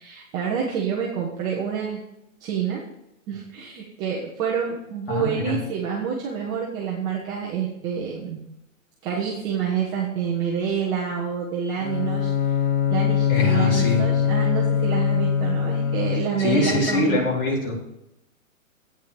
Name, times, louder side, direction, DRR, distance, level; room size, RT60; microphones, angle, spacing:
voice 1, 0.0-2.0 2.4-2.9 3.3-8.4 9.0-12.3 12.9-17.2, right 7 dB, 10° right, -4 dB, 0.5 m, -28 dB
voice 2, 5.1-5.6 13.3-14.0 16.4-17.8, left 2 dB, 40° left, -2 dB, 4.0 m, -23 dB
Bowed string instrument, 11.8-16.6, left 8 dB, 80° left, 1.4 m, -22 dB
8.6 x 7.5 x 6.7 m, 0.85 s
hypercardioid pair, 155°, 41 cm